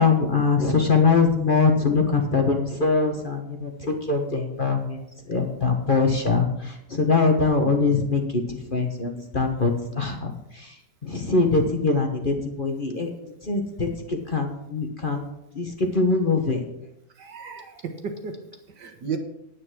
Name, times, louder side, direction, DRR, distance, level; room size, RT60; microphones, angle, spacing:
voice 1, 0.0-5.0 5.3-13.1 13.4-15.3 15.5-16.7, left 4 dB, 30° left, 3 dB, 1.3 m, -23 dB
voice 2, 17.2-19.2, right 5 dB, 70° right, 6 dB, 2.0 m, -34 dB
9.7 x 9.3 x 6.2 m, 0.84 s
omnidirectional pair, 1.9 m